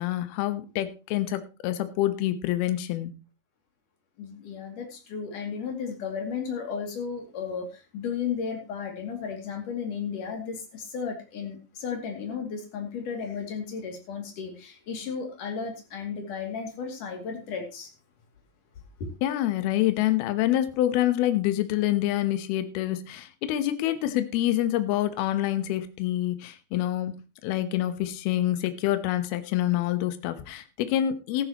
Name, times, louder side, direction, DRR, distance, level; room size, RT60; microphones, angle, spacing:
voice 1, 0.0-3.2 19.2-27.1 27.4-31.5, left 13 dB, 70° left, 10 dB, 2.5 m, -26 dB
voice 2, 4.2-17.9 19.0-19.1, left 6 dB, 50° left, 3 dB, 3.5 m, -34 dB
14.0 x 13.0 x 3.0 m, 0.29 s
omnidirectional pair, 5.5 m